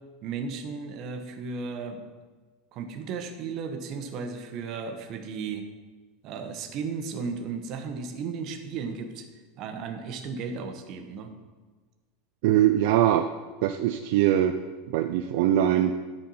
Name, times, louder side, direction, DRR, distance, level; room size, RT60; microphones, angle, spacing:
voice 1, 0.2-2.0 2.7-5.6 6.2-9.3 9.6-11.3, right 5 dB, 40° right, 6 dB, 0.9 m, -35 dB
voice 2, 12.4-13.3 13.6-14.6 14.9-16.0, right 12 dB, 60° right, 7 dB, 0.4 m, -22 dB
10.0 x 4.4 x 5.6 m, 1.3 s
supercardioid pair, 165°, 0 cm